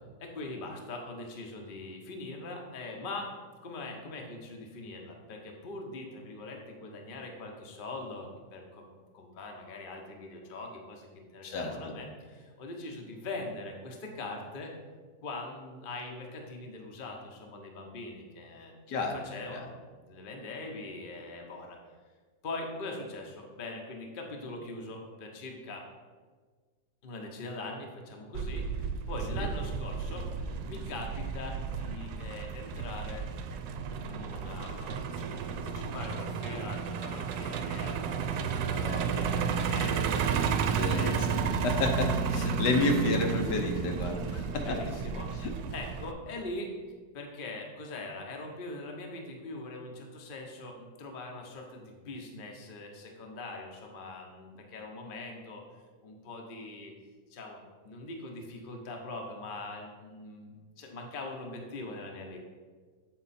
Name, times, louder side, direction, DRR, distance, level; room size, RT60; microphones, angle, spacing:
voice 1, 0.0-3.3 3.6-8.9 9.1-14.7 15.2-18.8 19.1-19.7 20.1-21.8 22.4-25.9 27.0-33.3 33.8-41.2 41.7-41.9 42.6-42.9 43.7-43.8 44.3-46.7 47.1-56.9 57.3-62.4, left 2 dB, 40° left, 1 dB, 0.9 m, -42 dB
voice 2, 11.4-11.9 18.9-19.2 19.5-19.7 29.3-29.5 40.7-44.7, left 2 dB, 80° left, 3 dB, 1.5 m, -30 dB
Truck, 28.3-46.1, right 6 dB, 75° right, 1.0 m, -32 dB
8.1 x 4.3 x 4.2 m, 1.5 s
omnidirectional pair, 1.8 m